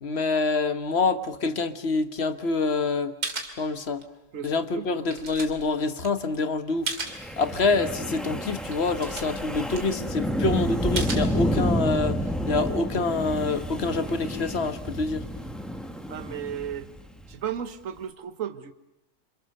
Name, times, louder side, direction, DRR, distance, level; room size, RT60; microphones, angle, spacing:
voice 1, 0.0-3.1 3.6-4.0 4.4-6.9 7.4-12.2 12.5-15.3, left 3 dB, 45° left, 10 dB, 1.4 m, -26 dB
sound 1, 2.9-3.0 3.2-4.2 4.6-7.3 7.7-7.9 8.3-8.4 8.6-10.4 11.0-11.9 12.4-14.6, right 4 dB, 80° right, 3.1 m, -37 dB
voice 2, 4.3-4.9 16.1-16.9 17.3-18.7, right 9 dB, 60° right, 10 dB, 1.5 m, -34 dB
Wind, 7.0-17.3, equal, ahead, 1.9 m, -30 dB
27.5 x 26.5 x 6.6 m, 0.88 s
omnidirectional pair, 1.6 m